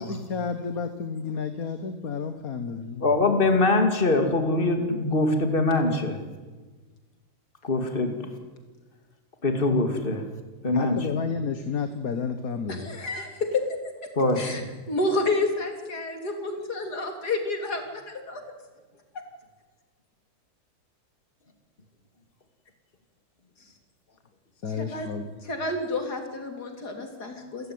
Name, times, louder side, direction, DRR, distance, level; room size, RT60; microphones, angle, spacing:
voice 1, 0.0-3.1 10.7-12.9 24.6-25.3, left 5 dB, 65° left, 9 dB, 1.8 m, -31 dB
voice 2, 3.0-6.2 7.6-8.3 9.4-10.3 10.6-11.0 14.2-14.6, left 2 dB, 35° left, 5 dB, 2.8 m, -23 dB
voice 3, 12.7-13.6 14.4-14.6 14.9-18.4 24.8-25.1 25.4-27.7, left 2 dB, 80° left, 5 dB, 3.8 m, -29 dB
28.5 x 15.0 x 9.5 m, 1.3 s
omnidirectional pair, 1.7 m